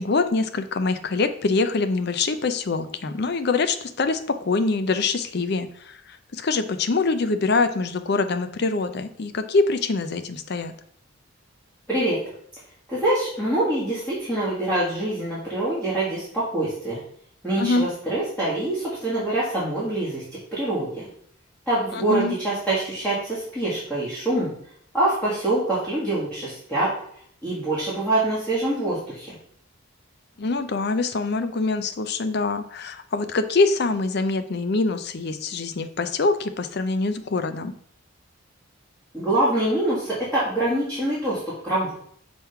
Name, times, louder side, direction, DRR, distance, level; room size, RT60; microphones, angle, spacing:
voice 1, 0.0-10.7 17.6-17.9 21.9-22.4 30.4-37.7, left 3 dB, 50° left, 9 dB, 0.5 m, -24 dB
voice 2, 11.9-12.2 12.9-17.0 17.4-20.2 20.5-21.1 21.7-24.5 24.9-26.9 27.4-29.3 39.1-41.9, right 1 dB, 10° left, -9 dB, 1.9 m, -25 dB
6.1 x 3.6 x 5.6 m, 0.65 s
head